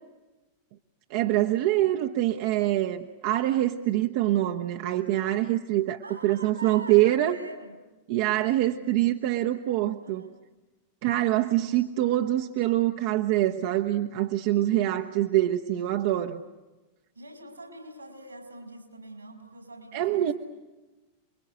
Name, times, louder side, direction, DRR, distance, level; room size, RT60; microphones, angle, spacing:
voice 1, 1.1-7.4 8.1-10.3 11.0-16.4 19.9-20.3, right 14 dB, 50° right, 4 dB, 1.1 m, -25 dB
voice 2, 6.0-7.8 8.3-8.9 10.0-10.4 11.1-11.6 17.1-20.3, right 2 dB, 80° right, 7 dB, 5.3 m, -44 dB
29.5 x 22.0 x 8.2 m, 1.1 s
figure-of-eight pair, 90°, 0 cm